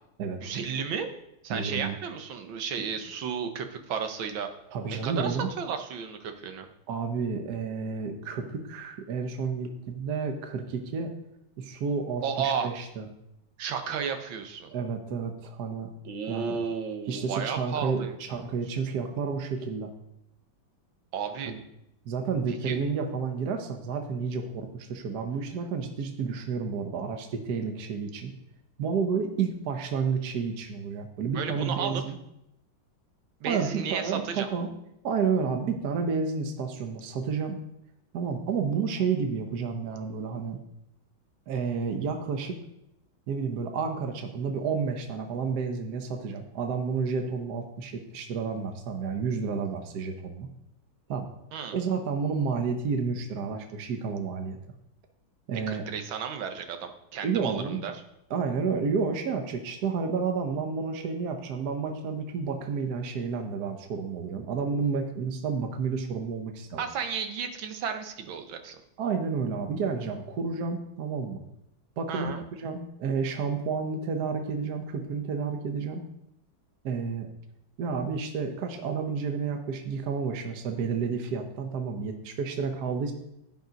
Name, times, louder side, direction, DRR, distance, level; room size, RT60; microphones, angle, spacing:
voice 1, 0.4-1.1 1.4-4.5 4.9-6.7 12.2-12.7 13.6-14.7 16.0-18.4 21.1-21.5 22.5-22.8 31.3-32.0 33.4-34.5 51.5-51.8 55.7-57.9 66.8-68.8 72.1-72.4, right 7 dB, 90° right, 7 dB, 1.7 m, -33 dB
voice 2, 1.5-1.9 4.7-5.5 6.9-11.1 11.6-13.1 14.7-15.9 16.3-16.6 17.1-19.9 21.5-21.6 22.1-28.3 28.8-32.2 33.4-34.7 35.0-37.6 38.1-40.6 41.5-42.6 43.3-50.5 51.1-51.3 51.7-54.6 55.5-55.8 57.2-57.8 58.3-66.8 69.0-71.4 72.0-72.3 72.6-76.0 76.8-77.3 77.8-83.1, right 5 dB, 60° right, 5 dB, 1.3 m, -30 dB
10.5 x 5.4 x 5.1 m, 0.82 s
omnidirectional pair, 2.1 m